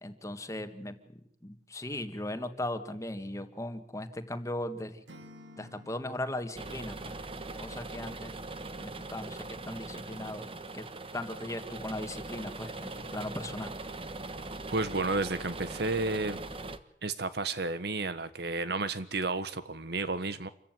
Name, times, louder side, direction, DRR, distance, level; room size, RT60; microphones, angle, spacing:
voice 1, 0.0-0.9 1.4-5.0 5.6-7.2 7.6-8.3 8.8-10.5 10.7-10.9 11.1-13.7, left 1 dB, 20° left, 8 dB, 1.9 m, -38 dB
Acoustic guitar / Strum, 5.1-8.1, left 1 dB, 85° right, 3.0 m, -55 dB
sound 1, 6.5-16.8, right 2 dB, 30° right, 1.4 m, -41 dB
voice 2, 14.7-16.4 17.0-20.5, right 3 dB, 65° right, 13 dB, 1.4 m, -32 dB
27.5 x 15.5 x 9.3 m, 0.69 s
head